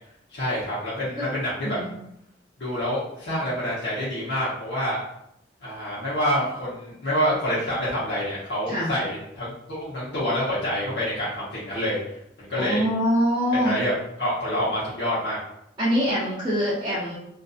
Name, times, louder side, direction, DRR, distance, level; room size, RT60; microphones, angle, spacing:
voice 1, 0.3-1.8 2.6-5.0 5.6-12.0 12.4-12.8 13.5-13.9 14.2-15.4, equal, 75° left, -10 dB, 0.9 m, -27 dB
voice 2, 1.6-2.0 8.7-8.9 12.6-13.8 15.8-17.2, equal, 25° right, -10 dB, 0.5 m, -24 dB
2.5 x 2.5 x 2.4 m, 0.79 s
head